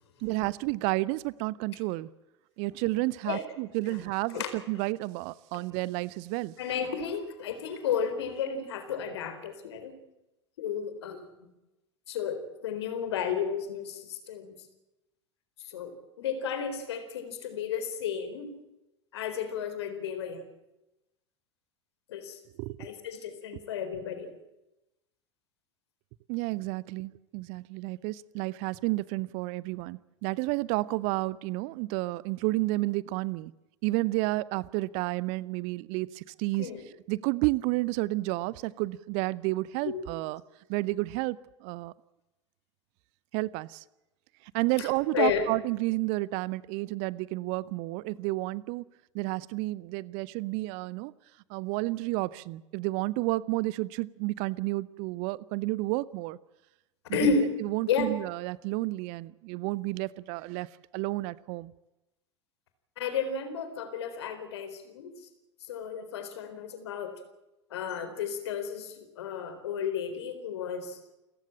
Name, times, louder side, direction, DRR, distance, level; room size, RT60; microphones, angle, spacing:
voice 1, 0.2-2.1 2.6-6.5 22.6-22.9 26.3-33.5 33.8-36.7 37.1-40.4 40.7-41.9 43.3-43.8 44.5-48.8 49.1-51.1 51.5-56.4 57.1-61.7, right 20 dB, 45° right, 0.7 m, -31 dB
voice 2, 6.6-9.9 10.6-11.2 12.1-14.6 15.6-15.9 16.2-18.6 19.1-20.4 22.1-22.4 22.8-24.3 36.6-36.8 39.8-40.0 44.8-44.9 45.1-45.5 57.1-57.5 57.9-58.1 63.0-65.3 65.7-67.2 67.7-71.0, left 6 dB, 60° left, 4.2 m, -32 dB
29.0 x 15.0 x 8.9 m
figure-of-eight pair, 85°, 15 cm